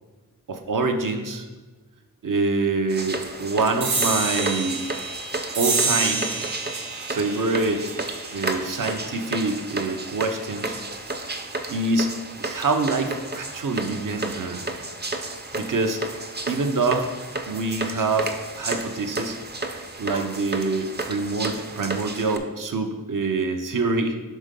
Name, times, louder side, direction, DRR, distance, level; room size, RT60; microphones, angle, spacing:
voice 1, 0.5-1.5 2.2-4.8 5.5-6.3 7.1-7.9 8.3-10.8 11.7-12.1 12.4-14.6 15.5-16.0 16.5-17.1 17.5-18.3 18.6-19.4 20.0-24.2, right 3 dB, 60° right, 5 dB, 0.7 m, -25 dB
sound 1, 2.9-22.4, right 2 dB, 30° right, 0.6 m, -32 dB
sound 2, 3.8-10.7, right 3 dB, 90° right, 1.0 m, -29 dB
5.3 x 3.7 x 5.2 m, 1.3 s
wide cardioid pair, 55°, 36 cm